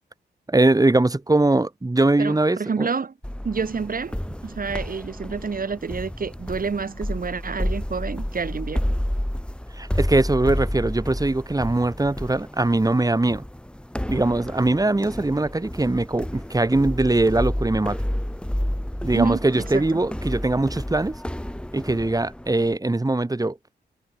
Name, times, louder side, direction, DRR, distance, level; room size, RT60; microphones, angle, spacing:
voice 1, 0.5-2.9 9.8-13.4 14.1-18.0 19.0-21.2 21.7-23.6, right 2 dB, 20° right, 2.1 m, -21 dB
voice 2, 2.2-3.1 3.4-4.2 4.4-8.8 19.1-20.0, right 5 dB, 50° right, 5.2 m, -28 dB
sound 1, 3.2-22.8, left 1 dB, 5° left, 3.2 m, -30 dB
cardioid pair, 65°, 18 cm